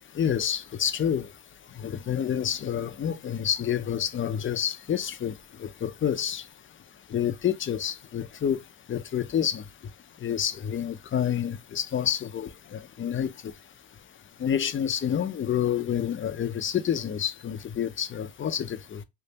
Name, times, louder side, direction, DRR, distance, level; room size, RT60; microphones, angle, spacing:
voice 1, 0.1-6.5 7.1-9.9 10.2-13.5 14.4-19.0, left 9 dB, 30° left, 0.5 m, -29 dB
3.3 x 2.5 x 2.8 m
supercardioid pair, 80°, 43 cm